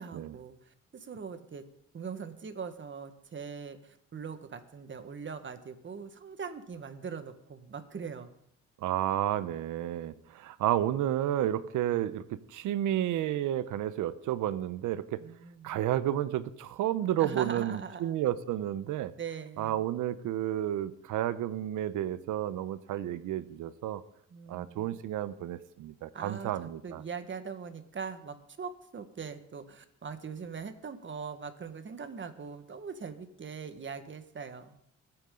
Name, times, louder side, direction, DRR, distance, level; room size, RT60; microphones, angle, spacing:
voice 1, 0.0-1.6 1.9-8.3 15.2-15.8 17.2-18.2 19.2-19.9 24.3-25.0 26.1-34.8, right 6 dB, 40° right, 9 dB, 1.6 m, -41 dB
voice 2, 8.8-15.2 15.6-19.1 19.6-24.0 24.5-27.0, right 12 dB, 85° right, 15 dB, 0.9 m, -31 dB
22.0 x 9.0 x 3.9 m, 0.73 s
cardioid pair, 90°, 30 cm